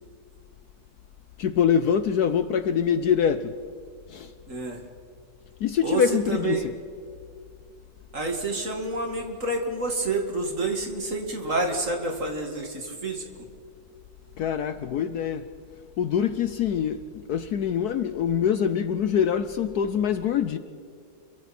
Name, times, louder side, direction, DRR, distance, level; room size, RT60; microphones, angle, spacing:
voice 1, 1.4-3.5 4.1-4.3 5.6-6.6 14.4-15.5 16.0-20.6, left 8 dB, 65° left, 1.1 m, -24 dB
voice 2, 4.5-4.8 5.8-6.7 8.1-13.5, right 2 dB, 40° right, 2.6 m, -29 dB
29.0 x 23.5 x 4.3 m
omnidirectional pair, 2.0 m